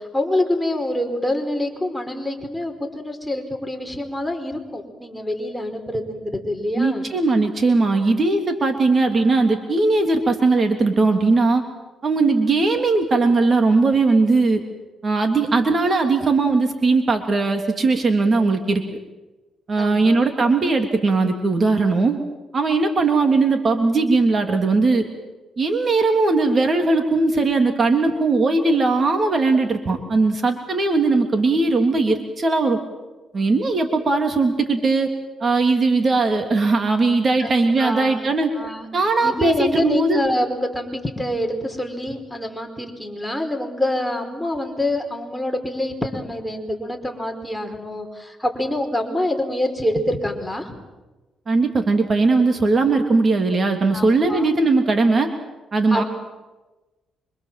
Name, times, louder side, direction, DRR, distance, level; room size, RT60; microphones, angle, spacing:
voice 1, 0.0-7.0 19.7-20.1 33.3-33.6 37.4-38.2 38.5-38.9 39.2-50.7 53.9-54.5 55.9-56.0, left 1 dB, 5° left, 3 dB, 4.9 m, -26 dB
voice 2, 6.7-11.6 12.0-14.6 15.0-18.8 19.7-22.2 22.5-25.0 25.6-32.8 33.3-35.1 35.4-38.5 38.9-40.2 51.5-55.3 55.7-56.0, right 3 dB, 40° right, 5 dB, 3.0 m, -19 dB
26.0 x 25.5 x 7.7 m, 1.1 s
cardioid pair, 90°, 0 cm